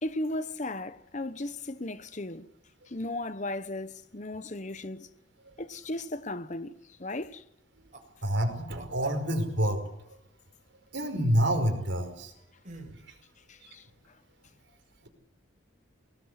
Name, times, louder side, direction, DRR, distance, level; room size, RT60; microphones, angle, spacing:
voice 1, 0.0-2.5 2.9-5.1 5.6-7.4 13.5-13.9, left 2 dB, 35° left, 1.1 m, -36 dB
sound 1, 7.9-8.1 8.8-9.6 12.6-13.1, right 2 dB, 40° right, 4.9 m, -47 dB
voice 2, 8.2-9.8 10.9-12.3 13.1-13.2, equal, 60° right, 5.2 m, -27 dB
25.0 x 19.5 x 8.2 m
head